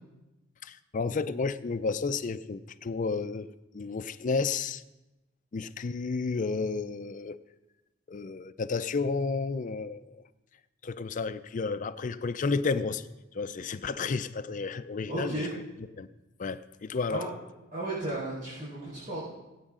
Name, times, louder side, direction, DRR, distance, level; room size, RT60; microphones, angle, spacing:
voice 1, 0.6-4.8 5.5-7.4 8.1-10.2 10.8-13.1 13.3-15.6 16.0-16.1 16.4-17.2, left 4 dB, 40° left, 0.4 m, -32 dB
voice 2, 15.1-15.5 17.1-17.3 17.7-19.2, right 1 dB, 45° right, 4.9 m, -34 dB
20.0 x 8.9 x 3.7 m
head